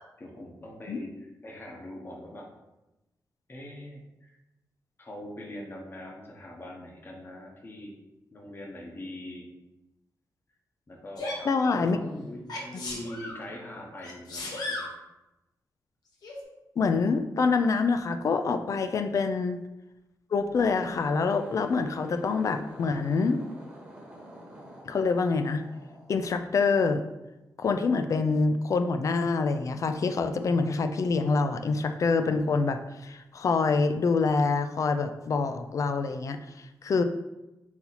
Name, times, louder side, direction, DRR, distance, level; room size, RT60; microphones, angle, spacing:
voice 1, 0.2-2.5 3.5-4.3 5.0-8.0 8.3-9.5 10.9-11.3 11.7-14.9 19.0-19.1, left 1 dB, 30° left, -1 dB, 0.9 m, -42 dB
Sneeze, 11.2-11.5 12.5-13.4 14.0-14.9 16.2-16.4, left 2 dB, 70° left, 1.0 m, -35 dB
voice 2, 11.5-12.0 16.8-19.6 20.3-23.4 24.9-25.6 26.1-27.0 27.6-37.0, left 4 dB, 50° left, 8 dB, 0.3 m, -26 dB
sound 1, 20.7-27.1, right 1 dB, 15° right, 1.1 m, -48 dB
4.0 x 2.8 x 4.1 m, 0.97 s
wide cardioid pair, 130°, 7 cm